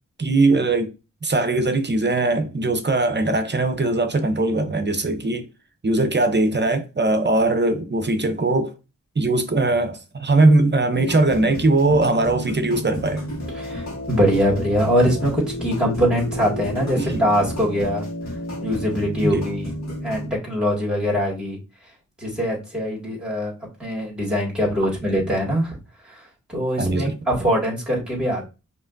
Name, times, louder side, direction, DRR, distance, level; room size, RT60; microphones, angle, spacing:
voice 1, 0.2-0.9 1.2-5.4 5.8-8.7 9.2-13.3 17.0-17.2 19.2-19.5 26.8-27.2, right 2 dB, 35° right, 0.7 m, -20 dB
sound 1, 10.9-20.3, left 1 dB, 55° left, 1.8 m, -31 dB
voice 2, 13.5-18.0 18.6-19.7 20.0-21.6 22.2-23.5 23.8-25.8 26.1-26.2 26.5-28.5, equal, 5° right, 1.9 m, -22 dB
4.8 x 3.0 x 2.5 m
cardioid pair, 45°, 33 cm